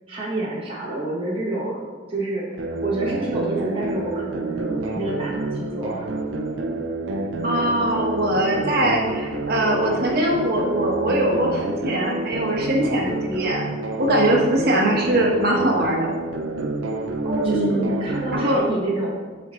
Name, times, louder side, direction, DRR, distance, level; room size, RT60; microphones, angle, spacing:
voice 1, 0.1-1.8 2.1-6.1 17.2-19.2, right 2 dB, 30° right, -6 dB, 1.3 m, -28 dB
sound 1, 2.6-18.6, right 2 dB, 70° right, 0.6 m, -28 dB
voice 2, 7.4-13.7 14.0-16.1 17.2-17.9 18.3-18.6, right 1 dB, 50° right, -1 dB, 1.2 m, -22 dB
9.3 x 4.3 x 3.1 m, 1.5 s
head